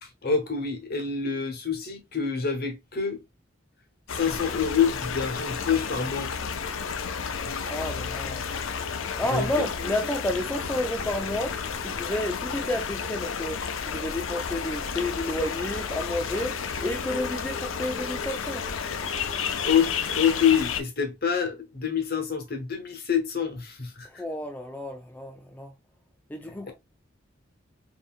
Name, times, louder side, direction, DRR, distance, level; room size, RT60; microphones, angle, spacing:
voice 1, 0.0-3.2 4.1-6.3 9.3-10.1 19.6-24.2, left 7 dB, 50° left, 1.2 m, -27 dB
sound 1, 4.1-20.8, left 6 dB, 85° left, 0.5 m, -32 dB
voice 2, 7.6-8.5 9.2-13.6 13.9-18.7 24.0-25.7 26.3-26.7, left 1 dB, 10° left, 0.4 m, -31 dB
3.8 x 3.4 x 2.4 m
head